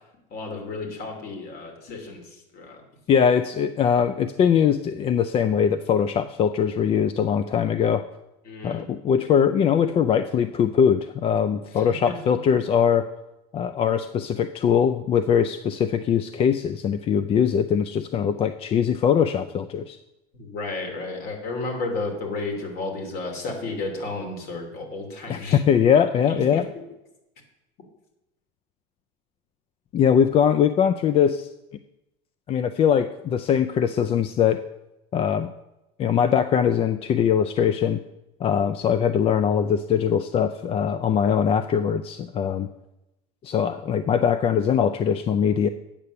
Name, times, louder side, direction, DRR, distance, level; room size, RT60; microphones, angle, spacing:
voice 1, 0.3-2.8 8.4-8.9 11.7-12.4 20.3-25.6 26.3-26.7, left 3 dB, 50° left, 3 dB, 2.6 m, -33 dB
voice 2, 3.1-8.0 8.6-13.1 13.5-20.0 25.3-26.6 29.9-31.5 32.5-34.6 35.1-35.5 36.0-38.0 38.4-42.7 43.4-45.7, left 8 dB, 30° left, 12 dB, 0.4 m, -21 dB
8.7 x 6.6 x 6.8 m, 0.94 s
supercardioid pair, 130°, 20 cm